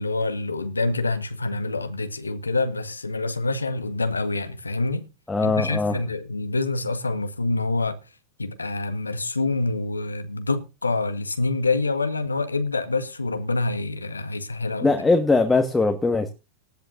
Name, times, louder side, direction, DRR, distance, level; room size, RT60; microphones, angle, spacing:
voice 1, 0.0-5.1 5.4-8.0 8.4-14.9, left 3 dB, 80° left, 1.2 m, -26 dB
voice 2, 5.3-6.0 14.8-16.3, left 3 dB, 10° left, 1.4 m, -21 dB
18.5 x 11.0 x 2.7 m
figure-of-eight pair, 90°, 0 cm